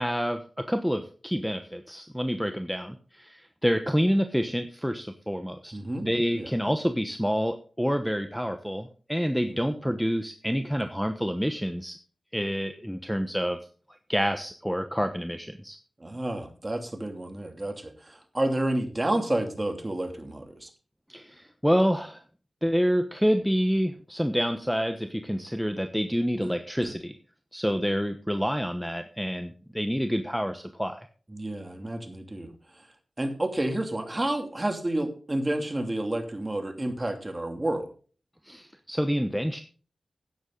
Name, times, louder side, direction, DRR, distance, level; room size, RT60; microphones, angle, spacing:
voice 1, 0.0-5.7 6.0-12.0 12.3-13.6 14.1-15.8 21.1-22.2 22.6-27.2 27.5-31.1 38.4-39.6, equal, ahead, 7 dB, 1.0 m, -28 dB
voice 2, 5.7-6.1 6.3-6.5 9.5-9.6 16.0-20.7 26.4-26.5 26.8-26.9 31.3-32.5 33.2-37.9, right 1 dB, 25° right, 5 dB, 2.7 m, -30 dB
12.5 x 9.6 x 3.9 m, 0.39 s
wide cardioid pair, 65°, 0 cm